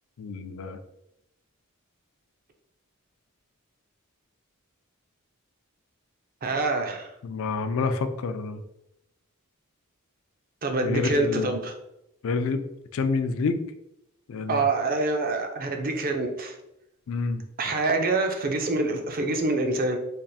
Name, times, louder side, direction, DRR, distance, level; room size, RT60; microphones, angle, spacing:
voice 1, 0.2-0.8 7.2-8.6 10.8-11.5 12.2-12.6 12.9-13.6 14.3-14.6 17.1-17.4, left 4 dB, 65° left, 9 dB, 0.4 m, -28 dB
voice 2, 6.4-7.1 10.6-11.7 14.5-16.6 17.6-20.0, right 2 dB, 45° right, 5 dB, 0.5 m, -26 dB
3.4 x 2.4 x 4.0 m, 0.84 s
head